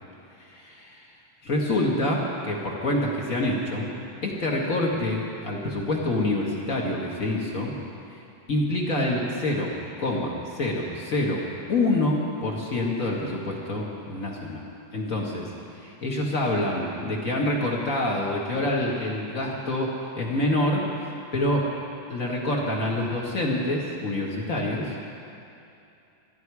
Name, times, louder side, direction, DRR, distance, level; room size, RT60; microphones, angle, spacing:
voice 1, 0.4-1.1 1.4-3.9 4.2-7.7 8.5-11.4 11.7-14.6 14.9-15.5 15.7-21.7 22.1-25.2, left 1 dB, 50° left, -2 dB, 1.0 m, -27 dB
24.5 x 11.5 x 4.8 m, 2.7 s
omnidirectional pair, 4.3 m